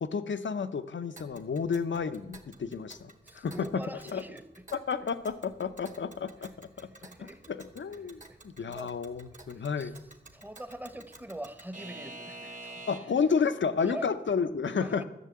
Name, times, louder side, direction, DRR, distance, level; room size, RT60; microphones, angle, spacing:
voice 1, 0.0-3.8 4.1-4.2 4.9-6.9 7.2-9.9 12.9-15.0, left 5 dB, 85° left, 11 dB, 0.7 m, -31 dB
Alarm / Clock, 1.2-13.3, right 2 dB, 40° right, 1.6 m, -50 dB
voice 2, 3.2-4.6 6.8-7.4 8.3-8.4 8.7-8.9 9.5-9.9 10.3-12.9 13.8-14.1 14.8-15.0, right 1 dB, 10° right, 11 dB, 0.9 m, -43 dB
12.5 x 6.6 x 8.4 m, 0.93 s
cardioid pair, 50°, 19 cm